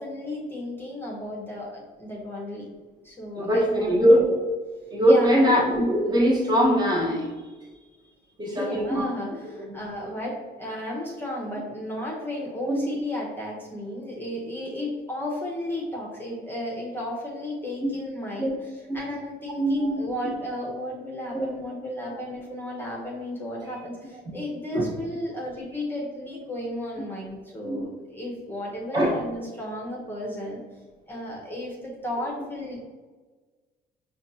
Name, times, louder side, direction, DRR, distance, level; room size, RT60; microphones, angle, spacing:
voice 1, 0.0-2.7 3.0-4.0 5.1-5.5 8.4-30.6 31.1-32.9, left 1 dB, 10° left, -3 dB, 0.8 m, -34 dB
voice 2, 3.4-4.4 4.9-7.3 8.4-9.0 9.6-9.8 12.7-12.9 17.8-17.9 18.4-18.5 18.9-19.0 19.6-20.0 21.3-21.5 22.7-22.8 24.7-24.9 27.6-27.8 28.9-29.2, equal, 25° right, -2 dB, 1.1 m, -21 dB
5.1 x 2.3 x 2.7 m, 1.3 s
cardioid pair, 110°, 17 cm